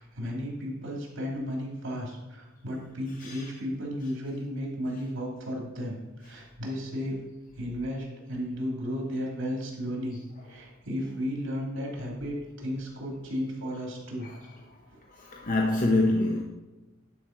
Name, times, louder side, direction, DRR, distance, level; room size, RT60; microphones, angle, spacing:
voice 1, 0.0-7.2 7.6-10.2 10.4-14.3, equal, 65° right, -2 dB, 2.9 m, -34 dB
voice 2, 3.2-3.5 4.0-4.1 11.1-11.2 14.2-14.6 15.2-16.4, left 2 dB, 40° left, 1 dB, 0.8 m, -27 dB
11.0 x 4.4 x 5.9 m, 1.1 s
head